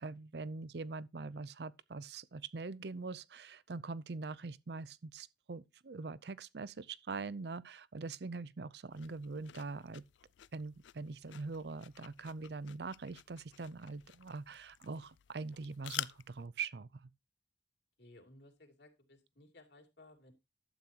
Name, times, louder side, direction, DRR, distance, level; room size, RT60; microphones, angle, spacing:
voice 1, 0.0-10.0 10.5-17.1, right 4 dB, 65° right, 0.6 m, -43 dB
sound 1, 8.9-16.5, left 12 dB, 90° left, 0.4 m, -49 dB
voice 2, 18.0-20.3, left 2 dB, 70° left, 3.1 m, -59 dB
12.0 x 8.6 x 2.9 m
head